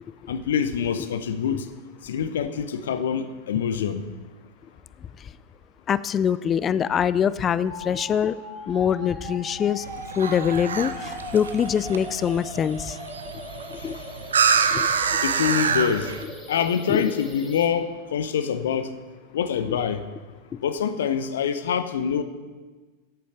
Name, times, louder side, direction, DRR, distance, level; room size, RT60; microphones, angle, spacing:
voice 1, 0.3-1.7 2.0-4.1 13.8-13.9 15.2-16.1 16.5-18.9 19.3-20.0 20.6-22.2, left 7 dB, 60° left, 12 dB, 0.7 m, -25 dB
voice 2, 5.9-8.4 8.7-9.8 10.2-13.0 13.8-14.0 14.7-14.9 16.9-17.1 19.7-19.8 20.5-20.6, left 8 dB, 25° left, 17 dB, 0.4 m, -24 dB
sound 1, 7.7-17.7, left 1 dB, 10° left, 2.5 m, -39 dB
sound 2, 9.8-16.2, right 6 dB, 70° right, 0.7 m, -26 dB
11.5 x 8.4 x 5.9 m, 1.3 s
figure-of-eight pair, 90°, 0 cm